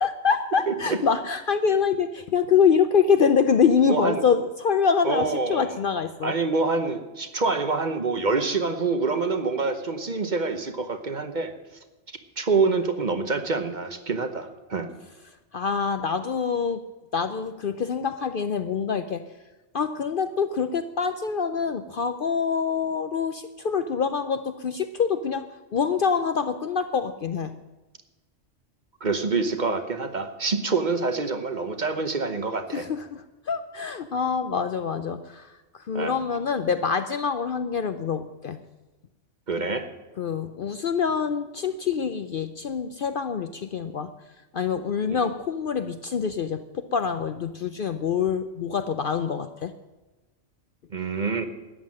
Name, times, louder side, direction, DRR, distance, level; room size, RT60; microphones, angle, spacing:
voice 1, 0.0-6.3 15.5-16.8 17.1-19.2 19.7-25.4 25.7-27.5 32.7-35.5 35.9-38.6 40.2-44.1 44.5-49.7, left 6 dB, 55° left, 10 dB, 0.7 m, -25 dB
voice 2, 0.7-1.0 3.9-4.2 5.0-5.7 6.2-11.5 12.4-14.9 29.0-32.9 35.9-36.1 39.5-39.9 45.1-45.2 50.9-51.4, right 4 dB, 40° right, 8 dB, 1.0 m, -26 dB
13.5 x 9.3 x 7.5 m, 1.1 s
omnidirectional pair, 1.3 m